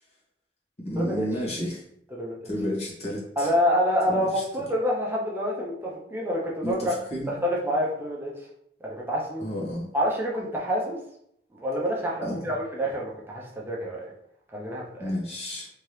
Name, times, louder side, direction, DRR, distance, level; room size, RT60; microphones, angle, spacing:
voice 1, 0.8-1.8 2.4-3.5 4.1-4.4 6.6-7.4 9.4-9.9 12.2-12.5 15.0-15.7, equal, 35° left, -6 dB, 1.3 m, -31 dB
voice 2, 3.4-7.0 7.3-8.3 8.8-9.4 9.9-11.0 11.5-14.0 14.5-15.1, equal, 15° right, -3 dB, 0.7 m, -27 dB
3.4 x 2.8 x 3.2 m, 0.71 s
head